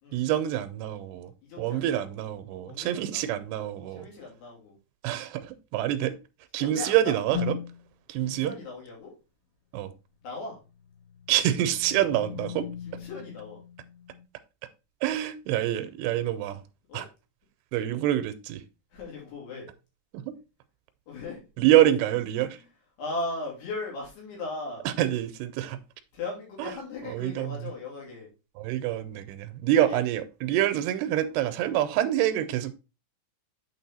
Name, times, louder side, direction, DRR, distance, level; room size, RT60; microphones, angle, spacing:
voice 1, 0.1-4.1 5.0-6.2 6.5-7.6 8.1-8.5 9.7-9.9 11.3-12.7 15.0-16.6 16.9-17.1 17.7-18.6 20.1-20.4 21.6-22.6 24.9-25.8 26.6-26.7 27.1-27.7 28.6-32.7, right 12 dB, 85° right, 2.6 m, -26 dB
voice 2, 1.4-2.0 2.7-3.3 3.9-4.8 6.6-7.4 8.2-9.1 10.2-10.6 12.9-13.6 16.9-17.1 18.9-19.7 21.1-21.4 22.4-22.6 23.0-24.8 26.1-28.3 29.9-30.0, left 2 dB, 80° left, 4.7 m, -38 dB
sound 1, 7.3-7.9 10.8-14.2, left 9 dB, 60° left, 3.8 m, -38 dB
8.4 x 4.4 x 4.0 m
omnidirectional pair, 4.6 m